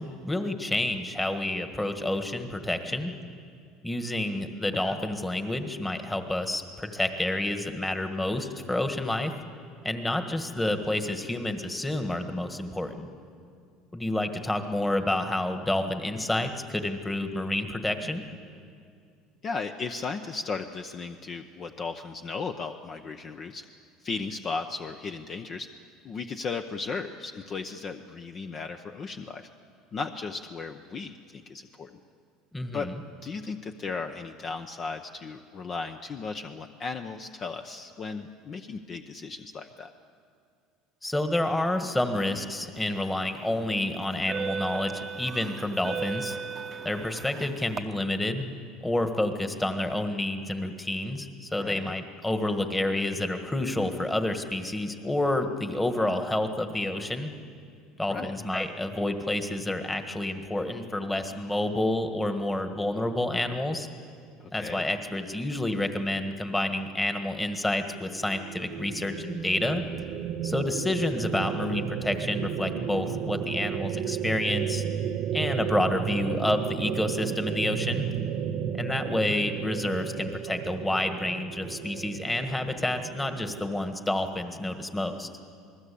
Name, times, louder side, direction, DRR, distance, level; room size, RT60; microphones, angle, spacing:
voice 1, 0.0-3.1 3.8-9.3 9.8-13.1 13.9-18.2 32.5-33.0 41.0-46.4 46.8-48.5 48.8-57.3 58.0-63.9 64.5-69.8 70.4-74.8 75.3-78.1 78.8-85.3, left 1 dB, 10° left, 7 dB, 1.6 m, -29 dB
voice 2, 19.4-23.6 24.0-25.7 26.0-29.5 29.9-31.9 32.7-32.9 33.2-39.9 51.6-51.9 58.1-58.4 64.5-64.9, left 4 dB, 35° left, 6 dB, 0.9 m, -36 dB
sound 1, 43.0-43.3 44.0-47.8, right 6 dB, 25° right, 0.9 m, -36 dB
sound 2, 67.8-83.7, right 9 dB, 50° right, 1.1 m, -33 dB
27.5 x 20.0 x 8.5 m, 2.2 s
cardioid pair, 135°, 0 cm